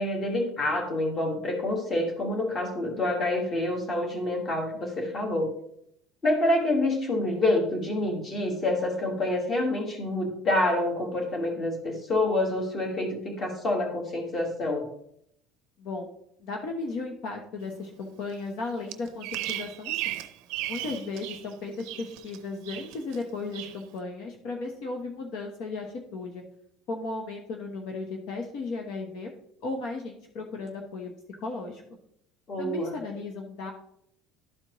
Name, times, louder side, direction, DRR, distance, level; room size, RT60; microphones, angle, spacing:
voice 1, 0.0-5.5 6.2-14.9 32.5-33.0, left 1 dB, 25° left, 2 dB, 1.6 m, -27 dB
voice 2, 16.4-20.1 20.7-26.4 26.9-29.3 29.6-31.1 31.4-31.8 32.6-33.7, left 3 dB, 55° left, 2 dB, 1.1 m, -35 dB
Bird vocalization bird call bird song, 18.9-21.5 21.7-22.4 22.6-23.2 23.5-23.8, right 15 dB, 70° right, 0.6 m, -35 dB
12.0 x 4.3 x 3.0 m, 0.73 s
cardioid pair, 160°, 0 cm